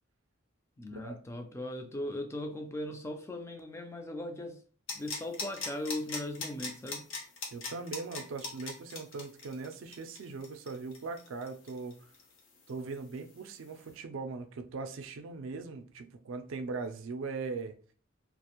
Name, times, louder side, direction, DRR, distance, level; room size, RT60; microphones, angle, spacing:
voice 1, 0.8-4.6 4.9-7.1, left 1 dB, 15° left, 0.3 m, -38 dB
sound 1, 4.9-12.4 12.7-12.8, left 3 dB, 80° left, 0.6 m, -40 dB
voice 2, 7.5-12.1 12.7-17.8, right 4 dB, 75° right, 0.4 m, -40 dB
2.4 x 2.0 x 2.8 m
head